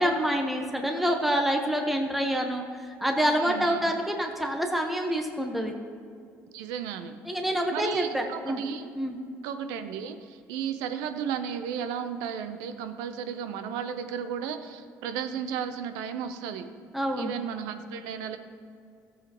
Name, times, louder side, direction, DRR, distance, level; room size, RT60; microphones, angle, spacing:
voice 1, 0.0-5.7 7.3-8.6 9.0-9.2 16.9-17.3, equal, ahead, 2 dB, 1.2 m, -27 dB
voice 2, 3.4-3.9 6.5-7.2 7.7-8.9 9.4-16.7 17.2-18.4, right 8 dB, 80° right, 9 dB, 0.7 m, -34 dB
14.5 x 7.4 x 3.0 m, 2.3 s
supercardioid pair, 70°, 6 cm